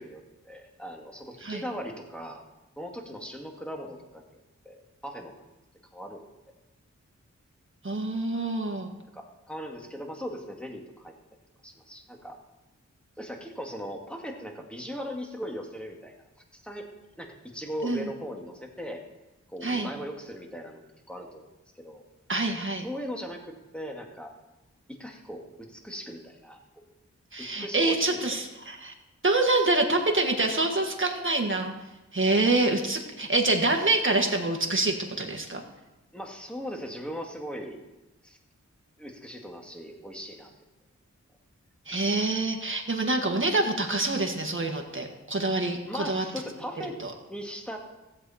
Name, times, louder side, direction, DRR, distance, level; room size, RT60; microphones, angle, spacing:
voice 1, 0.0-2.4 2.8-4.4 4.6-5.4 5.9-6.2 9.1-11.1 11.6-12.4 13.2-16.1 16.6-16.9 17.2-19.0 19.5-21.5 21.8-22.0 22.8-24.3 24.9-26.8 27.4-28.2 36.1-37.8 38.2-38.4 39.0-40.5 45.8-47.0 47.3-47.8, equal, 5° left, 1 dB, 2.0 m, -39 dB
voice 2, 7.8-8.9 17.8-18.1 19.6-19.9 22.3-22.9 27.3-28.9 29.2-31.7 32.1-35.6 41.9-46.2 47.0-47.1, right 2 dB, 40° right, 3 dB, 1.7 m, -26 dB
15.5 x 7.9 x 4.2 m, 1.0 s
wide cardioid pair, 50°, 30 cm